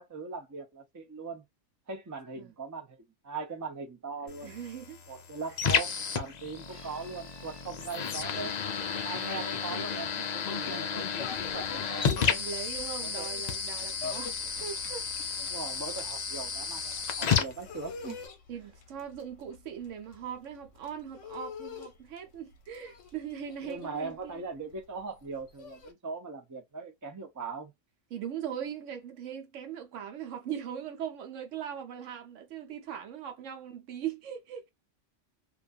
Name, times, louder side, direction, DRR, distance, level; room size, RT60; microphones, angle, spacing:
voice 1, 0.0-1.4 1.9-3.0 3.2-4.5 5.1-8.6 9.0-12.4 13.0-13.5 13.9-14.2 15.4-18.2 23.7-27.7, right 4 dB, 25° right, 0.4 m, -40 dB
sound 1, 4.3-18.3, left 6 dB, 60° left, 0.4 m, -33 dB
voice 2, 4.4-5.0 12.1-14.3 14.6-15.1 18.5-24.4 28.1-34.7, right 9 dB, 80° right, 1.0 m, -40 dB
Bowed string instrument, 6.7-11.3, right 2 dB, 45° right, 0.8 m, -54 dB
sound 2, 11.2-13.3 13.6-25.9, left 5 dB, 75° left, 1.0 m, -45 dB
2.5 x 2.3 x 2.3 m
omnidirectional pair, 1.3 m